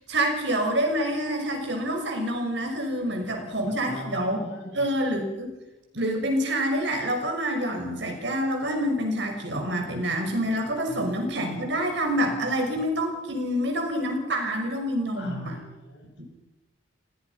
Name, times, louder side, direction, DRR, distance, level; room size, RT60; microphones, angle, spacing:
voice 1, 0.1-4.4 4.7-5.5 5.9-15.6 16.2-16.3, equal, 65° right, 3 dB, 6.2 m, -27 dB
voice 2, 3.3-4.9 10.9-11.7 15.2-16.2, left 1 dB, 60° left, 1 dB, 7.6 m, -42 dB
29.5 x 19.0 x 5.9 m, 1.0 s
head